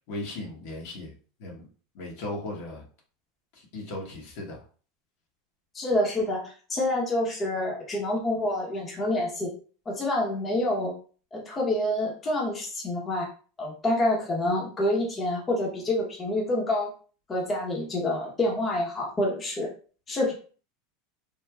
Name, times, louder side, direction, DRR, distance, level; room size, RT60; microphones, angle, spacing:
voice 1, 0.1-1.1 1.4-1.7 1.9-2.8 3.5-4.6, left 2 dB, 65° left, -1 dB, 1.0 m, -37 dB
voice 2, 5.7-6.4 6.7-9.5 9.9-10.9 11.3-13.3 13.6-16.9 17.3-19.7 20.1-20.3, left 1 dB, 25° left, -2 dB, 0.9 m, -27 dB
3.2 x 2.2 x 2.3 m, 0.39 s
supercardioid pair, 110°, 0 cm